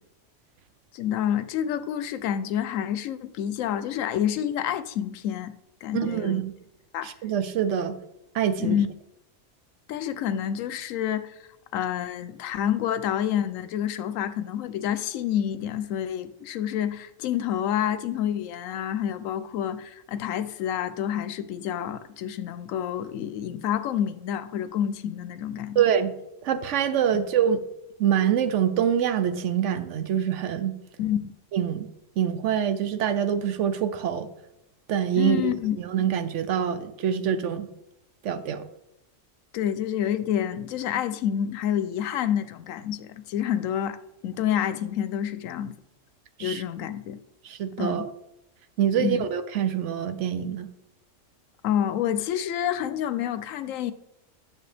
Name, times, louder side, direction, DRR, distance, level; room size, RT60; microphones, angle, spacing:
voice 1, 0.9-5.5 5.8-6.4 6.9-7.1 8.6-8.9 9.9-11.4 11.7-25.8 31.0-31.2 35.2-35.8 39.5-44.0 44.2-45.8 46.4-47.2 47.8-48.1 49.0-49.2 51.6-53.9, left 10 dB, 90° left, 1.0 m, -28 dB
voice 2, 5.9-6.5 7.0-7.9 8.3-8.8 25.8-26.1 26.4-27.6 28.0-30.8 31.5-31.9 32.2-34.3 34.9-35.5 35.9-37.7 38.2-38.6 46.4-46.6 47.4-48.1 48.8-50.7, right 9 dB, 70° right, 0.9 m, -25 dB
9.5 x 7.0 x 3.3 m
omnidirectional pair, 1.3 m